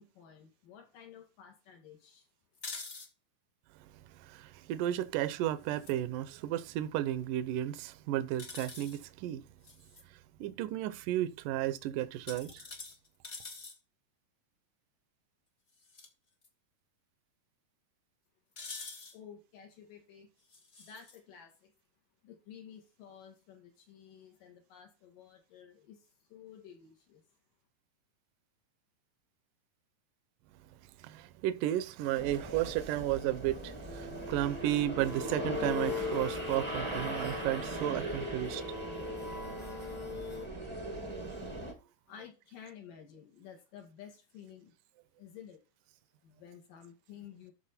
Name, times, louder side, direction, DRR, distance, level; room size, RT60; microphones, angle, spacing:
voice 1, 0.0-2.3 19.1-20.3 20.8-21.7 22.2-27.2 42.1-44.7 45.2-45.6 46.2-47.5, left 8 dB, 70° left, 3.9 m, -52 dB
sound 1, 2.5-3.1 5.6-6.0 8.4-9.0 9.6-10.0 12.3-13.8 15.8-16.1 16.4-16.5 18.6-19.2 20.5-21.2, left 3 dB, 40° left, 0.9 m, -45 dB
voice 2, 4.2-9.4 10.4-12.6 31.0-38.6, right 13 dB, 75° right, 2.2 m, -33 dB
sound 2, 32.2-41.7, right 1 dB, 20° right, 0.7 m, -40 dB
sound 3, 33.8-40.5, left 5 dB, 15° left, 1.3 m, -41 dB
13.0 x 4.4 x 4.3 m
omnidirectional pair, 4.0 m